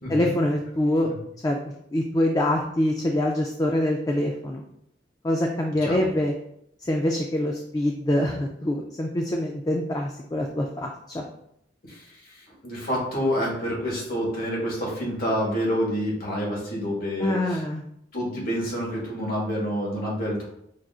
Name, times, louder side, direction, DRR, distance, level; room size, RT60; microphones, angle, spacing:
voice 1, 0.1-1.1 1.4-1.6 1.9-4.6 5.2-6.3 6.8-11.2 17.2-17.8, left 1 dB, 20° left, 1 dB, 0.3 m, -25 dB
voice 2, 11.8-17.6 18.1-20.5, equal, 55° left, -4 dB, 1.3 m, -28 dB
5.7 x 2.5 x 2.4 m, 0.74 s
head